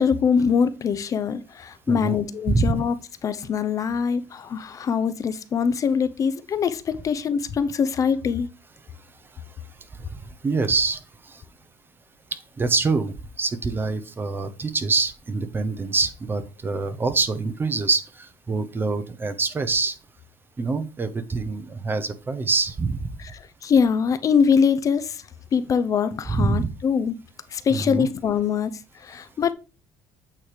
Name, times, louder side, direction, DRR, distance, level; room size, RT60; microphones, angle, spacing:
voice 1, 0.0-2.9 3.2-8.5 23.2-25.2 25.5-27.2 27.5-29.5, left 6 dB, 40° left, 0.6 m, -23 dB
voice 2, 1.9-2.2 2.5-2.7 10.1-11.4 12.6-20.0 20.6-23.2 26.3-26.7 27.7-28.1, right 4 dB, 25° right, 0.9 m, -25 dB
8.6 x 3.3 x 5.1 m
cardioid pair, 105°, 9 cm